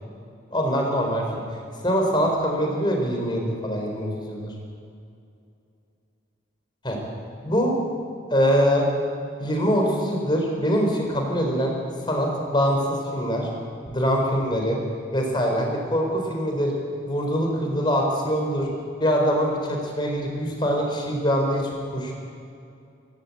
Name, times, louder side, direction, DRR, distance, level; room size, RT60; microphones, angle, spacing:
voice 1, 0.5-1.6 1.8-4.5 6.8-7.0 7.4-7.7 8.3-8.9 9.4-11.7 12.0-13.5 13.9-14.8 15.1-16.7 17.0-18.7 19.0-22.1, equal, 25° left, 1 dB, 4.2 m, -23 dB
18.5 x 17.5 x 8.6 m, 2.5 s
head